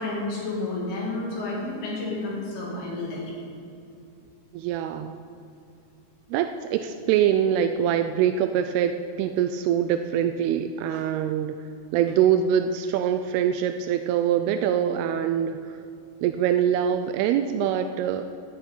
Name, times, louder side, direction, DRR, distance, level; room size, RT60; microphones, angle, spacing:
voice 1, 0.0-3.3 10.9-11.0, left 2 dB, 75° left, -4 dB, 4.3 m, -31 dB
voice 2, 4.5-5.2 6.3-11.6 11.9-15.8 16.2-18.2, right 9 dB, 85° right, 8 dB, 2.5 m, -24 dB
13.0 x 7.0 x 8.9 m, 2.5 s
omnidirectional pair, 4.5 m